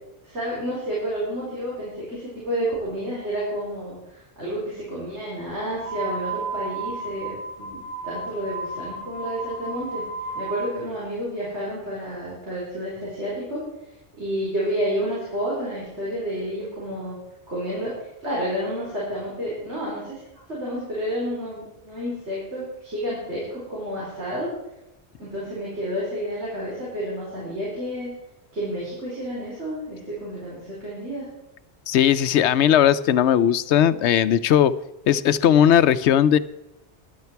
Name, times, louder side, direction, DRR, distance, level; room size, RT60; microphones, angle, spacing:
voice 1, 0.2-10.0 10.3-13.6 14.2-17.2 17.5-18.0 18.2-20.2 20.5-24.5 25.2-28.1 28.5-31.3, equal, 80° right, -7 dB, 4.8 m, -30 dB
sound 1, 5.7-10.7, right 3 dB, 25° right, 5.2 m, -33 dB
voice 2, 31.9-34.7 35.1-36.4, left 10 dB, 80° left, 15 dB, 0.9 m, -18 dB
14.0 x 11.5 x 4.6 m, 0.93 s
omnidirectional pair, 1.2 m